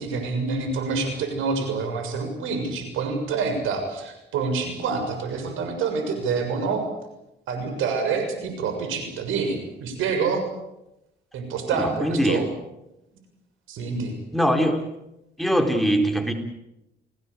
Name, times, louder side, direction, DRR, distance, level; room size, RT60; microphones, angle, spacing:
voice 1, 0.0-6.8 7.5-10.5 11.3-12.4 13.7-14.1, right 5 dB, 90° right, 6 dB, 6.8 m, -27 dB
voice 2, 11.7-12.4 14.3-14.8 15.4-16.3, equal, ahead, 4 dB, 4.1 m, -22 dB
29.5 x 18.5 x 8.5 m, 0.89 s
cardioid pair, 90°, 20 cm